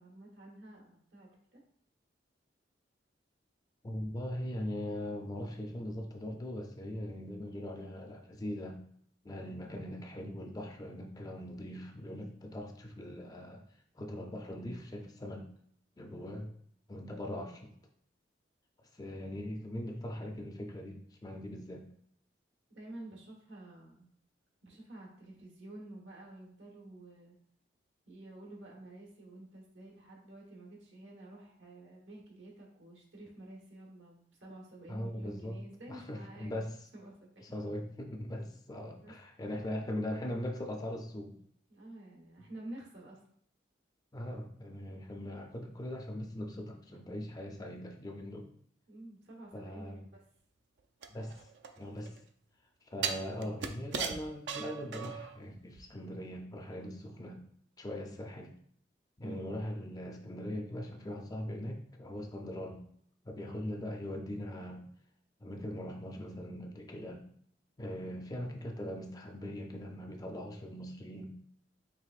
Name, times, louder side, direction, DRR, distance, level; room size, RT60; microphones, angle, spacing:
voice 1, 0.0-1.6 22.7-24.1 24.6-27.4 28.1-36.5 36.9-37.4 39.0-39.1 41.7-43.2 46.9-47.0 48.9-50.0 58.1-58.2 59.2-59.5 63.4-63.6, right 1 dB, 85° right, -2 dB, 1.2 m, -50 dB
voice 2, 3.8-8.8 9.2-13.6 13.9-15.4 16.0-16.5 16.9-17.7 18.9-21.8 34.9-35.6 35.9-36.8 37.4-41.3 44.1-48.5 49.5-50.0 51.1-51.5 51.8-52.2 52.8-57.4 57.8-58.5 59.2-62.8 63.3-64.9 65.4-67.2 67.8-71.3, left 1 dB, 20° left, 3 dB, 0.5 m, -40 dB
sound 1, 51.0-52.2 53.0-55.4 55.8-55.9, right 6 dB, 70° right, 0.4 m, -38 dB
4.8 x 3.3 x 2.4 m, 0.65 s
head